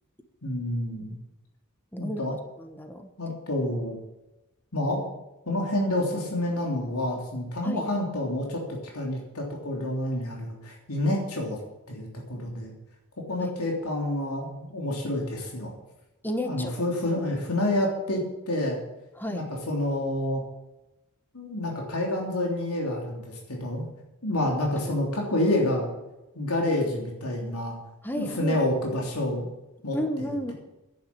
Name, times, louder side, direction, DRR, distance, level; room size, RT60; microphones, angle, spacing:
voice 1, 0.4-1.2 2.0-2.4 3.2-4.0 4.7-5.0 5.4-11.6 11.9-12.7 13.3-15.7 16.4-18.8 19.3-20.4 21.3-23.9 24.2-25.9 26.3-27.8 28.2-29.5 29.8-30.0, left 1 dB, 85° left, -1 dB, 3.3 m, -28 dB
voice 2, 2.6-3.1 7.6-7.8 13.4-13.5 16.2-16.8 19.2-19.5 24.9-25.2 28.0-28.6 29.9-30.5, equal, 10° left, 6 dB, 1.1 m, -32 dB
11.0 x 9.5 x 8.7 m, 0.96 s
head